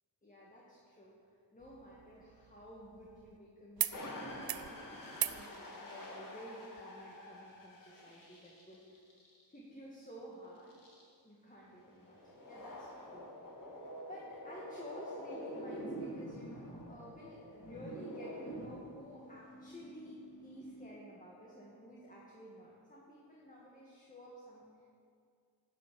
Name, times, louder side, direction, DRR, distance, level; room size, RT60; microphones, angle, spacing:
voice 1, 0.2-1.1 1.5-9.1 9.5-10.7 11.2-13.3 13.6-20.2 20.4-24.9, equal, 15° left, -5 dB, 1.7 m, -53 dB
sound 1, 1.6-3.4 3.8-4.0 4.3-4.7 5.1-5.4 6.8-6.9, right 11 dB, 55° right, 0.5 m, -39 dB
sound 2, 3.9-9.6 10.7-11.0 11.9-20.9, equal, 45° left, 2.2 m, -47 dB
11.0 x 6.2 x 6.2 m, 2.3 s
wide cardioid pair, 90°, 45 cm